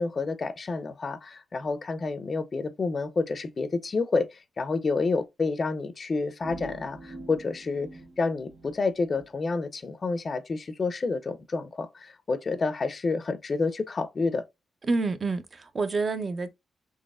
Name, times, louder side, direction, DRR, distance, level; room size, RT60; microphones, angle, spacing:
voice 1, 0.0-7.9 8.2-14.4, left 3 dB, 40° left, 0.5 m, -29 dB
sound 1, 6.4-9.3, right 1 dB, 70° right, 0.9 m, -45 dB
voice 2, 14.9-16.5, right 3 dB, 40° right, 0.6 m, -28 dB
4.0 x 2.9 x 2.3 m
cardioid pair, 75°, 0 cm